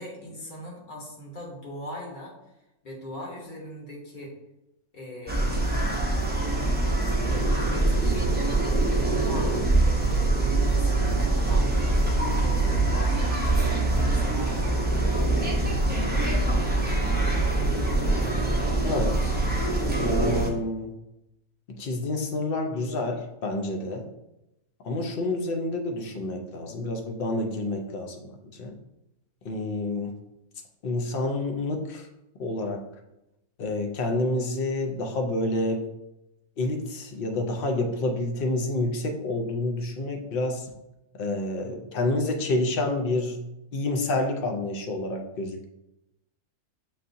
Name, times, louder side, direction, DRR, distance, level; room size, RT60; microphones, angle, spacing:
voice 1, 0.0-2.3 2.8-4.3 4.9-5.6 6.6-9.5 9.8-11.8 12.4-13.4 14.1-15.6 15.9-16.7, equal, 35° left, -2 dB, 1.2 m, -40 dB
sound 1, 5.3-20.5, right 2 dB, 15° right, 0.4 m, -24 dB
voice 2, 18.8-19.4 20.0-20.9 21.7-24.1 24.8-28.7 29.4-30.2 30.8-32.1 32.4-32.9 33.6-35.9 36.6-40.7 41.2-43.4 43.7-45.7, left 2 dB, 55° left, 3 dB, 0.6 m, -28 dB
7.4 x 2.8 x 2.6 m, 0.91 s
omnidirectional pair, 1.6 m